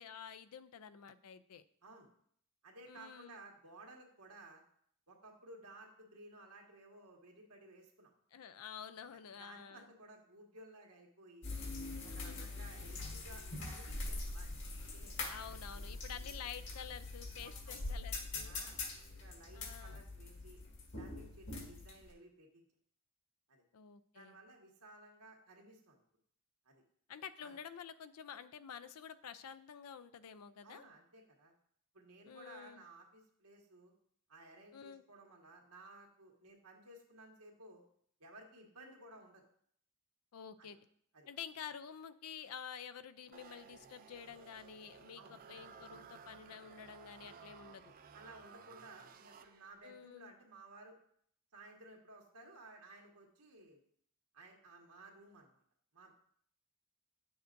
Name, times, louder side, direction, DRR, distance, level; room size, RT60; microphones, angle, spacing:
voice 1, 0.0-1.6 2.9-3.4 8.3-9.9 12.1-12.5 15.3-18.6 19.5-20.0 23.7-24.4 27.1-30.8 32.3-32.8 34.7-35.0 40.3-40.8 41.3-47.9 49.8-50.3, left 7 dB, 75° left, 13 dB, 0.4 m, -50 dB
voice 2, 2.6-4.6 5.1-8.1 9.4-11.5 12.0-14.6 14.9-15.1 15.8-15.9 17.4-17.8 18.4-18.8 19.2-20.6 21.0-22.7 23.5-23.6 24.1-26.0 26.7-26.8 27.4-27.5 30.6-31.5 31.9-33.9 34.3-37.8 38.2-39.4 40.6-40.7 41.1-41.3 45.2-45.4 48.1-51.0 51.5-53.8 54.3-55.6 55.9-56.1, right 2 dB, 85° right, 0 dB, 1.6 m, -57 dB
sound 1, 11.4-22.1, left 2 dB, 60° left, 1.7 m, -43 dB
sound 2, 43.3-49.9, right 6 dB, 40° right, 0.4 m, -57 dB
9.1 x 6.9 x 2.6 m, 0.64 s
head